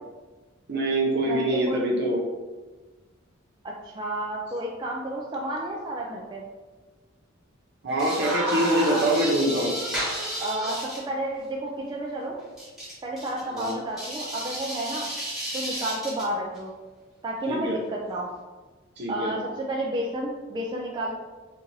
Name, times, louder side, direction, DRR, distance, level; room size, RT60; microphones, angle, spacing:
voice 1, 0.7-2.2 7.8-9.7 13.5-13.8 17.5-17.8 19.0-19.3, right 1 dB, 55° right, -3 dB, 0.9 m, -24 dB
voice 2, 1.2-1.9 3.6-6.4 10.4-10.8 11.1-12.4 13.0-15.1 15.5-16.7 17.2-18.3 19.1-21.1, right 1 dB, 20° right, -3 dB, 0.3 m, -31 dB
sound 1, 7.9-11.0 12.6-16.2 16.6-16.7, right 1 dB, ahead, 1.1 m, -31 dB
4.5 x 2.5 x 2.7 m, 1.3 s
head